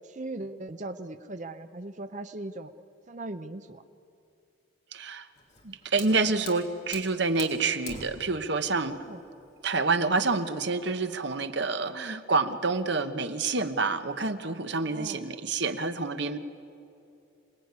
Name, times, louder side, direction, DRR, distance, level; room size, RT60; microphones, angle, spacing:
voice 1, 0.1-2.7 3.1-3.8 8.9-9.2 11.9-12.2 14.8-15.3, right 2 dB, 35° right, 9 dB, 0.7 m, -39 dB
voice 2, 4.9-5.3 5.6-9.0 9.6-16.4, right 3 dB, 55° right, 9 dB, 1.1 m, -28 dB
Fire, 5.4-11.3, left 4 dB, 35° left, 2.9 m, -46 dB
27.5 x 19.0 x 9.6 m, 2.7 s
head